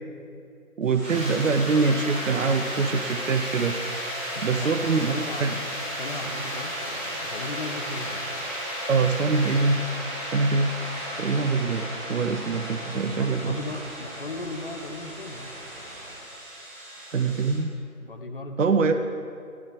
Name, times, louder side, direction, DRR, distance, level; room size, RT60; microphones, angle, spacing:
voice 1, 0.8-3.8 4.4-5.6 8.9-9.8 10.2-10.7 11.2-13.6 17.1-17.7 18.6-18.9, right 4 dB, 60° right, 9 dB, 0.6 m, -24 dB
sound 1, 0.9-17.5, equal, 10° right, 1.1 m, -34 dB
voice 2, 4.3-4.7 5.1-8.5 8.9-9.0 12.9-15.5 18.0-18.8, left 2 dB, 40° left, 6 dB, 0.7 m, -37 dB
sound 2, 10.7-16.1, right 1 dB, 45° right, 2.5 m, -45 dB
12.5 x 4.9 x 6.2 m, 2.4 s
figure-of-eight pair, 155°, 44 cm